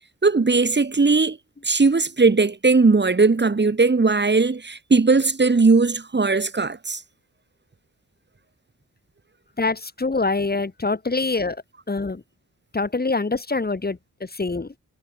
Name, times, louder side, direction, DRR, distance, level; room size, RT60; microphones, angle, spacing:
voice 1, 0.2-1.4 1.6-7.0, right 3 dB, 35° right, 3.6 m, -18 dB
voice 2, 9.6-11.6 11.9-12.2 12.7-14.8, left 3 dB, 30° left, 4.7 m, -25 dB
wide cardioid pair, 110°, 33 cm